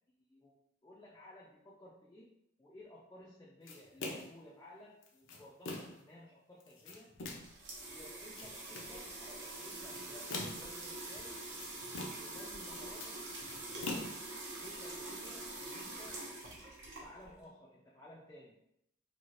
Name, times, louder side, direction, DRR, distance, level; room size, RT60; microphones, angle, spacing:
voice 1, 0.2-0.6 0.8-2.3 2.6-7.1 7.9-11.4 12.2-14.3 14.6-16.2 17.0-18.6, left 1 dB, 15° left, -5 dB, 0.4 m, -56 dB
sound 1, 3.7-4.4 5.0-6.1 6.6-7.6 8.1-9.0 9.7-10.8 11.3-12.4 12.6-14.7, left 2 dB, 80° left, 0.6 m, -44 dB
sound 2, 7.2-17.4, right 2 dB, 65° right, 0.8 m, -45 dB
2.8 x 2.8 x 3.0 m, 0.78 s
head